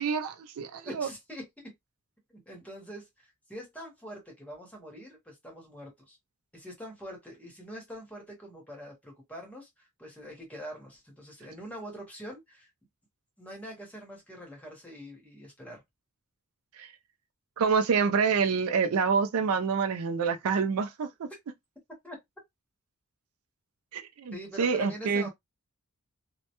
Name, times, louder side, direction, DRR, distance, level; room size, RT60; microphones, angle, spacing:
voice 1, 0.0-1.1 16.7-16.9 17.6-21.3 23.9-25.3, right 5 dB, 70° right, 0.4 m, -27 dB
voice 2, 0.9-1.4 2.3-6.2 6.5-12.7 13.4-15.8 22.0-22.2 24.3-25.3, equal, 5° left, 0.9 m, -44 dB
2.1 x 2.1 x 2.8 m
head